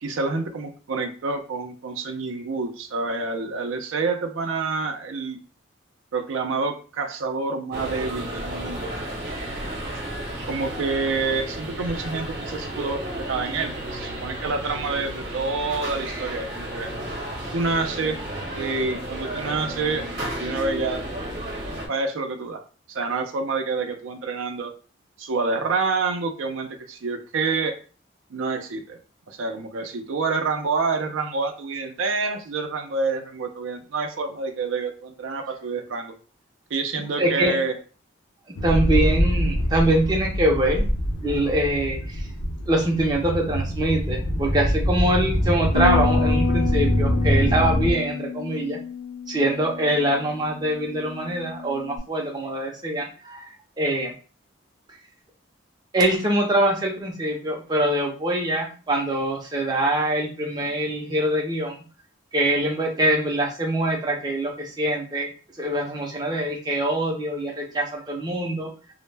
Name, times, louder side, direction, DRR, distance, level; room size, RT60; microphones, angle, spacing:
voice 1, 0.0-5.4 6.1-8.9 10.4-16.9 17.5-18.2 18.5-20.1 20.4-21.0 21.9-22.6 22.9-24.7 25.2-27.8 28.3-29.0 29.3-36.1 36.7-37.8, right 4 dB, 80° right, 5 dB, 0.4 m, -27 dB
sound 1, 7.7-21.9, right 1 dB, 50° right, 0.8 m, -33 dB
voice 2, 37.2-37.6 38.6-40.8 41.2-42.3 42.7-48.8 49.3-54.1 55.9-61.8 62.3-65.3 65.6-68.7, right 1 dB, 20° right, 0 dB, 0.4 m, -24 dB
sound 2, 38.6-47.9, equal, 90° left, 0.6 m, -24 dB
Bass guitar, 45.7-52.0, left 6 dB, 55° left, 0.7 m, -30 dB
2.1 x 2.0 x 3.2 m, 0.37 s
head